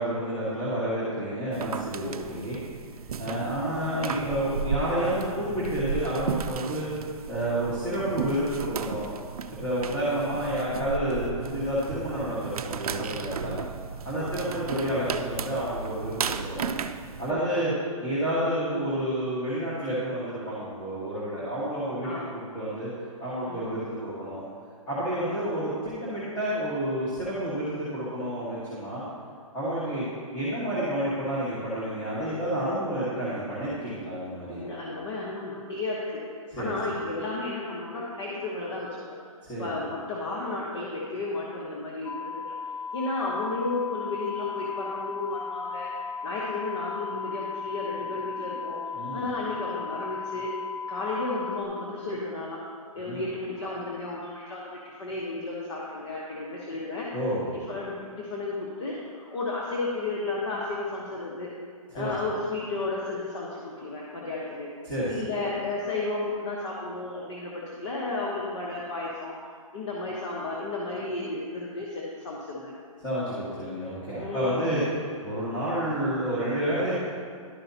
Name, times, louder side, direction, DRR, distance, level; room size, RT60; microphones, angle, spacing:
voice 1, 0.0-2.6 3.2-6.9 7.3-9.1 9.5-13.6 14.0-16.7 17.2-17.7 18.0-22.1 22.5-22.9 23.2-24.4 24.9-29.0 29.5-30.0 30.3-34.6 36.5-36.7 39.4-39.7 48.9-49.3 53.0-53.2 57.1-57.5 61.9-62.1 64.8-65.3 73.0-74.8 75.2-76.9, right 1 dB, 10° left, -11 dB, 1.6 m, -30 dB
sound 1, 1.5-17.3, right 6 dB, 90° right, 0.5 m, -35 dB
voice 2, 34.6-36.2 36.6-39.2 39.6-42.5 42.9-45.9 46.2-50.6 50.9-52.6 52.9-54.7 55.0-57.1 57.5-61.5 61.9-64.7 65.1-69.3 69.7-72.7 74.2-74.7, left 2 dB, 50° left, -4 dB, 1.2 m, -33 dB
sound 2, 42.0-51.6, left 5 dB, 80° left, 0.7 m, -36 dB
11.5 x 5.5 x 2.8 m, 2.1 s
hypercardioid pair, 160°, 18 cm